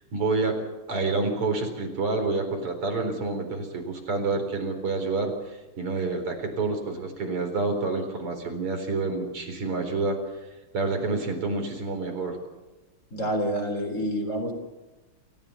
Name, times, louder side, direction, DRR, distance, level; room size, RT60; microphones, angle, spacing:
voice 1, 0.1-0.6 0.9-10.2 10.7-12.4, right 3 dB, 90° right, 5 dB, 5.0 m, -28 dB
voice 2, 13.1-14.5, equal, 35° left, 5 dB, 4.4 m, -28 dB
29.0 x 15.0 x 7.0 m, 1.1 s
omnidirectional pair, 2.4 m